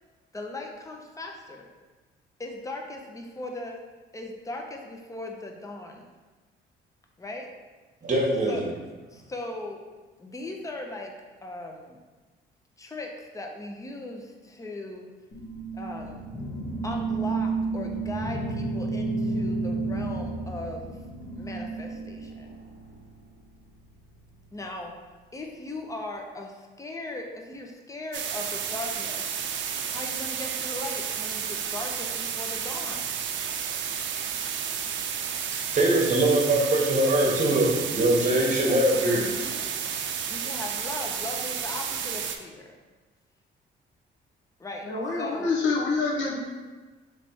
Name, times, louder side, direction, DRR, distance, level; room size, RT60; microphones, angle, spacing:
voice 1, 0.3-1.7 2.4-3.8 4.1-6.1 7.2-7.5 8.5-8.6 9.1-9.8 10.2-11.1 11.4-12.0 12.8-15.1 15.7-16.2 16.8-21.0 21.3-22.5 24.5-24.9 25.3-29.4 29.9-33.1 38.9-39.7 40.3-42.8 44.6-45.6, left 2 dB, 15° left, 1 dB, 0.7 m, -38 dB
voice 2, 8.0-8.6 35.5-39.3, right 1 dB, 40° right, -1 dB, 1.1 m, -22 dB
sound 1, 15.3-23.1, right 3 dB, 50° left, 1.0 m, -31 dB
sound 2, 17.9-19.7, equal, ahead, 1.0 m, -45 dB
sound 3, 28.1-42.4, right 7 dB, 70° right, 0.5 m, -32 dB
voice 3, 44.8-46.4, left 4 dB, 75° left, -4 dB, 1.1 m, -26 dB
3.3 x 3.2 x 4.2 m, 1.3 s
cardioid pair, 90°, 20 cm